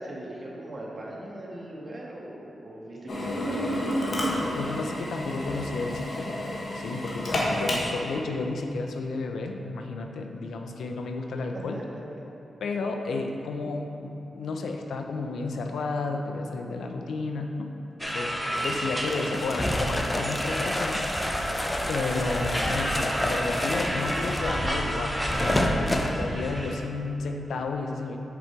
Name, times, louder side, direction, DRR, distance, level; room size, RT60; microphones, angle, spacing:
voice 1, 0.0-4.1 6.8-7.5 11.7-12.0 13.6-13.7 18.4-18.9, right 1 dB, 45° right, -3 dB, 1.5 m, -40 dB
Drill, 3.1-8.2, left 1 dB, 60° left, 1.4 m, -30 dB
voice 2, 4.6-6.3 6.7-11.8 12.6-17.7 18.0-21.0 21.9-28.2, left 3 dB, 80° left, 4 dB, 0.6 m, -32 dB
sound 1, 18.0-26.7, equal, ahead, 1.2 m, -30 dB
sound 2, 18.6-26.1, left 1 dB, 20° left, 0.7 m, -30 dB
6.7 x 5.1 x 4.6 m, 3.0 s
cardioid pair, 55°, 0 cm